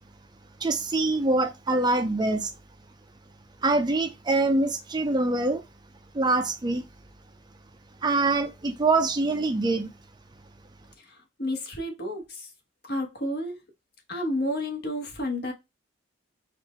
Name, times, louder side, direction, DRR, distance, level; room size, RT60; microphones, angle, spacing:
voice 1, 0.6-2.5 3.6-5.6 6.1-6.9 8.0-9.9, right 2 dB, 20° right, 0.5 m, -24 dB
voice 2, 11.4-12.5 12.9-13.6 14.1-15.5, left 1 dB, 55° left, 1.4 m, -30 dB
4.5 x 2.5 x 4.3 m
head